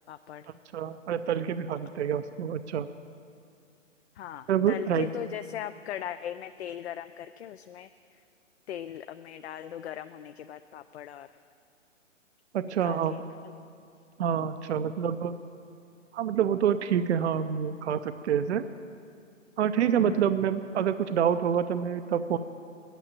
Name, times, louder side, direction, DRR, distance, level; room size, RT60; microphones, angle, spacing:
voice 1, 0.1-0.4 4.2-7.9 8.7-11.3 12.8-13.2 20.1-20.2, left 10 dB, 55° left, 10 dB, 0.5 m, -39 dB
voice 2, 0.7-2.9 4.5-5.1 12.5-13.1 14.2-15.3 16.1-18.6 19.6-22.4, right 8 dB, 60° right, 12 dB, 0.6 m, -27 dB
9.7 x 9.2 x 9.6 m, 2.3 s
hypercardioid pair, 135°, 39 cm